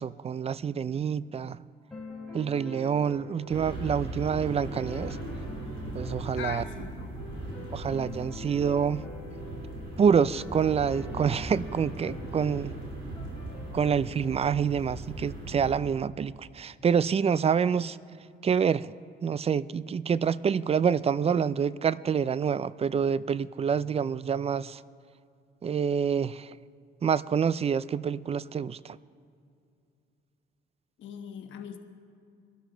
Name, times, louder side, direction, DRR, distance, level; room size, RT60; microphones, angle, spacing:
voice 1, 0.0-1.6 2.3-5.2 5.9-6.6 7.7-9.1 10.0-12.8 13.7-18.0 18.4-18.9 19.2-24.8 25.6-26.6 27.0-29.0, right 7 dB, 30° right, 0.3 m, -27 dB
sound 1, 1.9-13.9, left 1 dB, 5° left, 4.1 m, -44 dB
sound 2, 3.5-15.8, right 1 dB, 80° right, 3.4 m, -39 dB
voice 2, 6.3-7.1 31.0-31.8, left 8 dB, 70° left, 1.2 m, -40 dB
22.0 x 12.5 x 3.9 m
cardioid pair, 90°, 20 cm